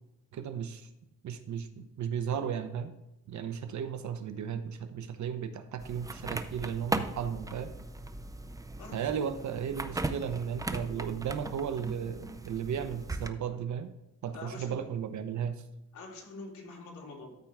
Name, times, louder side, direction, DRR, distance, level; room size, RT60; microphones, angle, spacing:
voice 1, 0.3-0.9 1.2-2.9 3.3-7.7 8.9-13.9 14.2-15.6, right 8 dB, 60° right, 9 dB, 0.9 m, -35 dB
sound 1, 5.8-13.3, right 2 dB, 10° right, 0.5 m, -38 dB
voice 2, 8.8-9.3 14.3-14.9 15.9-17.4, left 2 dB, 65° left, -2 dB, 3.4 m, -45 dB
13.5 x 4.5 x 3.6 m, 0.90 s
cardioid pair, 125°, 33 cm